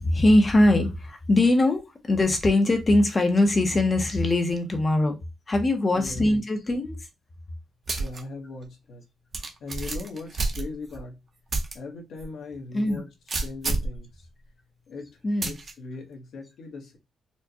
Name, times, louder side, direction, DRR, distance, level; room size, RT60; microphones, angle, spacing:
voice 1, 0.0-1.8 2.1-5.2 5.5-7.0 12.7-13.0 15.2-15.5, left 1 dB, 20° left, 0.6 m, -21 dB
sound 1, 7.9-8.2 8.6-8.7 9.3-11.0 11.5-11.7 12.2-12.3 13.3-14.0 15.4-15.7, right 3 dB, 30° right, 0.7 m, -29 dB
voice 2, 8.0-9.0 9.6-11.2 11.7-13.1 13.4-14.3 14.9-17.0, left 3 dB, 65° left, 1.0 m, -39 dB
4.3 x 2.1 x 2.7 m
wide cardioid pair, 165°, 0 cm